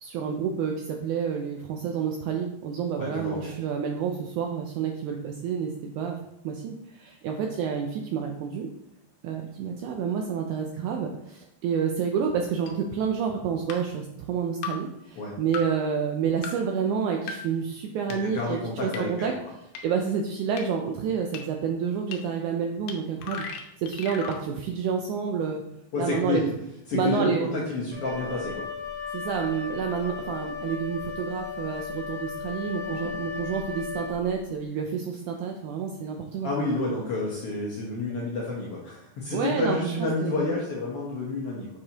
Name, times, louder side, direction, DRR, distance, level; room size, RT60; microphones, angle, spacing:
voice 1, 0.0-6.2 6.4-8.7 9.2-19.3 19.8-25.6 26.0-26.4 26.9-27.5 29.1-36.5 39.3-40.5, right 6 dB, 80° right, 2 dB, 1.8 m, -29 dB
voice 2, 3.0-3.5 15.2-15.3 18.2-19.3 25.9-26.4 26.9-28.7 32.8-33.1 36.4-41.7, left 3 dB, 65° left, -4 dB, 1.5 m, -30 dB
sound 1, 12.7-12.8 13.7-13.8 14.6-14.7 15.5-15.6 16.4-16.5 17.3-17.4 18.1-18.2 18.9-19.0 19.8-19.9 20.6-20.7 21.3-21.4 22.1-22.2 22.9-23.0 23.2-24.4, left 5 dB, 85° left, 2.5 m, -35 dB
Wind instrument woodwind instrument, 27.9-34.5, left 5 dB, 65° right, 0.5 m, -36 dB
7.2 x 4.8 x 2.8 m, 0.83 s
omnidirectional pair, 3.9 m